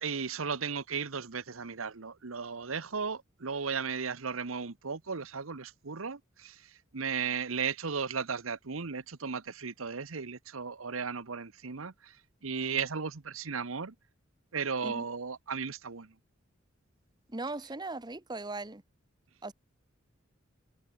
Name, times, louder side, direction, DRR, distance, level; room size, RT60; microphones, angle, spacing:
voice 1, 0.0-13.9 14.5-16.1, right 5 dB, 90° right, 1.1 m, -35 dB
voice 2, 17.3-18.8 19.4-19.5, right 2 dB, 20° right, 1.1 m, -38 dB
head